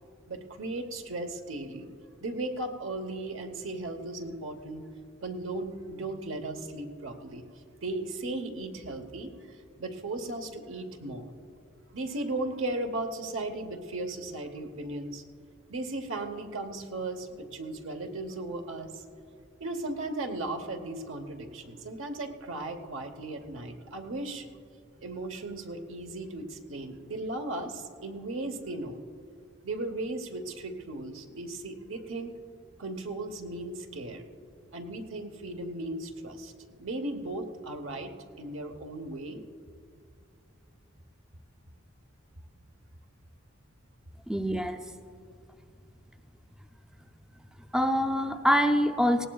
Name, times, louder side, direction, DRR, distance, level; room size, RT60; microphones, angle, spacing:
voice 1, 0.3-1.9 2.2-4.9 5.2-7.4 7.8-9.3 9.8-11.3 11.9-15.2 15.7-19.0 19.6-24.5 25.0-29.0 29.6-32.3 32.8-34.2 34.7-36.5 36.8-38.1 38.4-39.4, right 2 dB, 65° right, 6 dB, 1.0 m, -36 dB
voice 2, 44.3-44.8 47.7-49.3, equal, 5° right, 7 dB, 0.4 m, -25 dB
19.0 x 17.5 x 2.4 m, 2.4 s
head